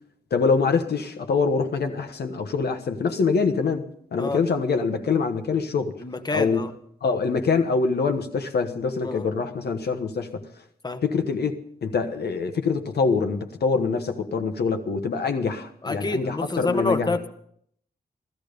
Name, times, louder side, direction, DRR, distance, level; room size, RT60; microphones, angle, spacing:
voice 1, 0.3-5.9 6.3-6.6 7.0-10.4 11.0-11.6 11.8-17.2, left 4 dB, 85° left, 1.3 m, -24 dB
voice 2, 6.0-6.7 9.0-9.3 10.8-11.0 15.8-17.3, left 3 dB, 25° left, 1.1 m, -27 dB
15.5 x 14.0 x 5.2 m
wide cardioid pair, 150°, 16 cm